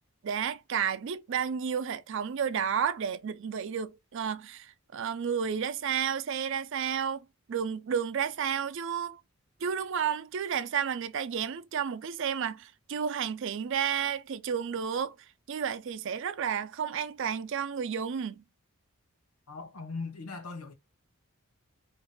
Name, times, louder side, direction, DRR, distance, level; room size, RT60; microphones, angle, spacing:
voice 1, 0.2-9.2 9.6-15.1 15.5-18.4, right 7 dB, 55° right, 0.4 m, -31 dB
voice 2, 19.5-20.7, left 4 dB, 85° left, 0.8 m, -39 dB
3.9 x 2.6 x 2.2 m
head